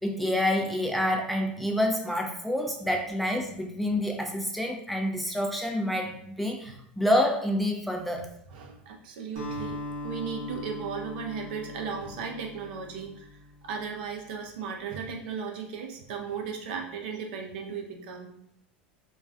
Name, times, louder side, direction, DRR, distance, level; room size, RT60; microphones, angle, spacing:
voice 1, 0.0-8.3, left 1 dB, ahead, 1 dB, 0.4 m, -28 dB
voice 2, 8.5-13.4 13.6-18.3, right 6 dB, 65° right, 2 dB, 0.5 m, -36 dB
Acoustic guitar, 9.4-13.8, left 1 dB, 45° right, 0.9 m, -40 dB
2.3 x 2.2 x 2.4 m, 0.71 s
hypercardioid pair, 85°, 6 cm